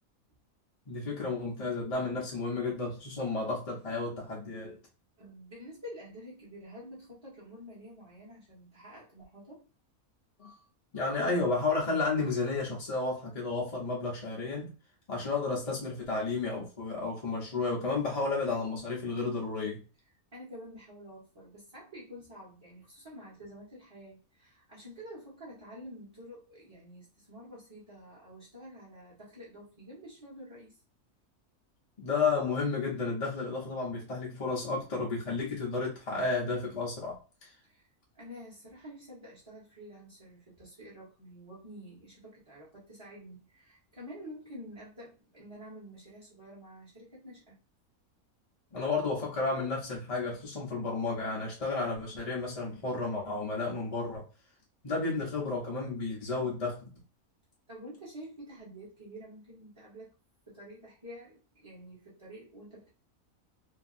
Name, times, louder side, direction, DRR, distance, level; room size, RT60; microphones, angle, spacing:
voice 1, 0.9-4.8 10.4-10.5 10.9-14.7 15.1-19.8 32.0-37.5 48.7-54.2 54.8-56.9, left 3 dB, 40° left, 0.5 m, -32 dB
voice 2, 5.2-9.7 20.3-30.8 37.6-37.9 38.1-47.5 57.7-60.1 60.5-62.9, equal, 20° right, 1.0 m, -48 dB
2.8 x 2.6 x 2.4 m
omnidirectional pair, 1.5 m